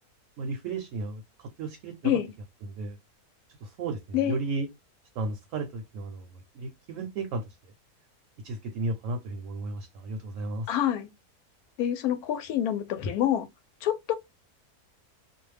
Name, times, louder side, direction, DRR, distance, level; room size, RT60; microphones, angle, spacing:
voice 1, 0.4-2.2 2.6-3.0 3.6-4.7 5.2-7.6 8.4-10.7, right 3 dB, 65° right, 0.8 m, -34 dB
voice 2, 10.7-11.1 11.8-13.5 13.8-14.1, left 11 dB, 75° left, 1.0 m, -27 dB
2.5 x 2.2 x 3.1 m
omnidirectional pair, 1.6 m